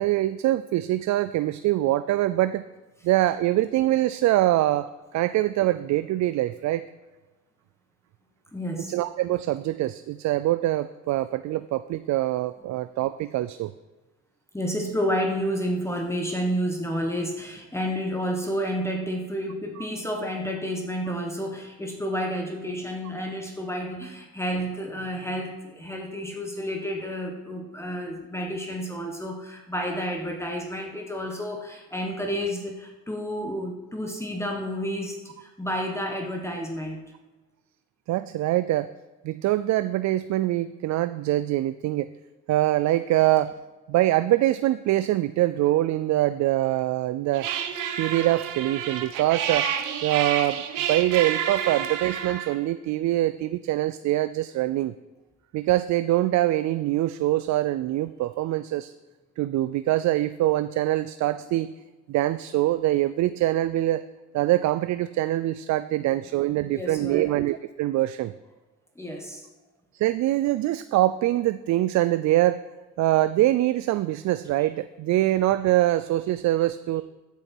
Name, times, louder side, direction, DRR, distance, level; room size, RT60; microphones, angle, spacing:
voice 1, 0.0-2.6 3.0-6.9 8.9-13.7 19.8-19.9 38.1-38.9 39.2-42.1 42.5-43.5 43.9-47.5 48.0-49.7 50.0-50.6 50.9-54.9 55.5-58.9 59.4-61.7 62.1-64.0 64.3-68.3 69.9-72.6 73.0-77.0, right 15 dB, 65° right, 13 dB, 0.4 m, -24 dB
voice 2, 8.5-9.0 14.5-37.0 65.9-66.1 66.6-67.4 68.9-69.5, equal, 10° left, 1 dB, 1.4 m, -30 dB
sound 1, 47.3-52.6, right 8 dB, 90° right, 1.1 m, -29 dB
14.5 x 7.0 x 4.5 m, 1.2 s
cardioid pair, 100°, 30 cm